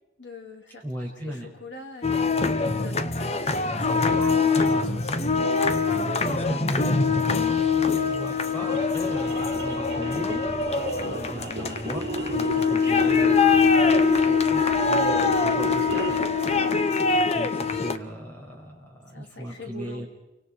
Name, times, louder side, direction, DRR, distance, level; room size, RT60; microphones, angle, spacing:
voice 1, 0.2-0.8 1.2-5.8 9.9-10.3 11.0-11.2 16.6-17.1 19.1-20.0, left 3 dB, 70° left, 3 dB, 3.1 m, -42 dB
voice 2, 0.8-1.5 4.6-4.8 6.3-10.5 11.1-16.2 17.2-20.1, equal, 10° left, -1 dB, 6.0 m, -37 dB
sound 1, 2.0-18.0, left 4 dB, 35° left, 0.9 m, -23 dB
sound 2, 7.7-16.4, right 1 dB, 70° right, 2.3 m, -33 dB
29.0 x 24.5 x 4.6 m, 0.95 s
head